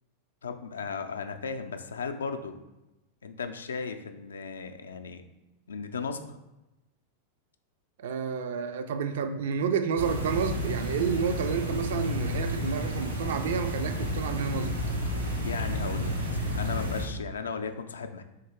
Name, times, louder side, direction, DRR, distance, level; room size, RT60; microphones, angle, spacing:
voice 1, 0.4-2.6 3.2-5.2 5.7-6.4 15.4-18.2, left 5 dB, 70° left, 7 dB, 0.3 m, -36 dB
voice 2, 8.0-14.7, right 6 dB, 55° right, 8 dB, 0.3 m, -30 dB
sound 1, 10.0-17.1, equal, 75° right, 1.0 m, -31 dB
3.8 x 3.0 x 4.2 m, 0.98 s
figure-of-eight pair, 90°, 0 cm